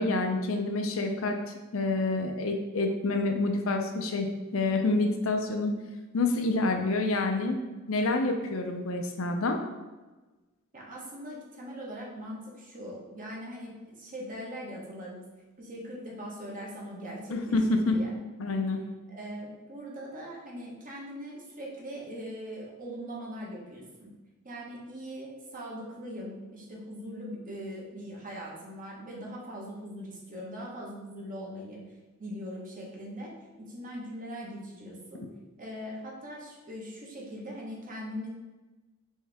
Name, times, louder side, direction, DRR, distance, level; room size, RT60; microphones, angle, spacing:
voice 1, 0.0-1.4 1.7-5.7 6.1-7.6 7.9-9.6 17.3-18.0 18.4-18.8, left 2 dB, 75° left, 4 dB, 0.6 m, -27 dB
voice 2, 10.7-15.2 15.6-18.1 19.1-24.1 24.4-31.8 32.2-33.3 33.6-35.3 35.6-38.3, equal, 40° right, -3 dB, 1.2 m, -41 dB
4.5 x 3.3 x 3.5 m, 1.2 s
head